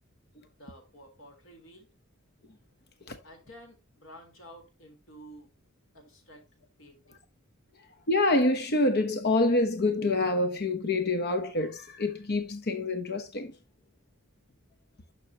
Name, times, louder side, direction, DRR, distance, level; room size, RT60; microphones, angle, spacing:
voice 1, 0.5-1.9 3.2-5.5 5.9-6.5 6.8-7.2, equal, 65° left, 4.0 m, -51 dB
voice 2, 8.1-13.5, left 2 dB, 50° left, 1.0 m, -26 dB
11.5 x 6.5 x 2.9 m
head